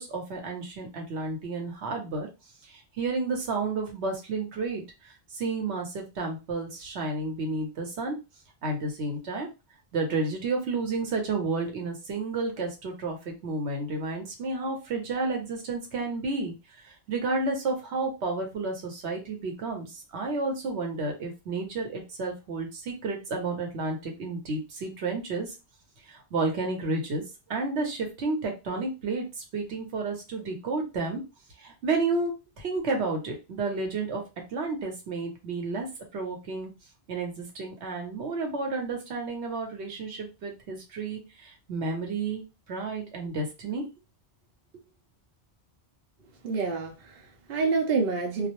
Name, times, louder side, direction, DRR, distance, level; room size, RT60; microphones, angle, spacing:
voice 1, 0.0-2.3 2.6-8.1 8.6-9.5 9.9-16.5 17.1-25.5 26.1-27.2 27.5-31.2 31.6-34.2 34.5-35.9 36.1-36.7 37.1-42.4 42.7-43.9, right 3 dB, 85° right, 1.1 m, -31 dB
voice 2, 46.4-48.5, right 4 dB, 65° right, 0.8 m, -28 dB
2.4 x 2.0 x 2.8 m
omnidirectional pair, 1.1 m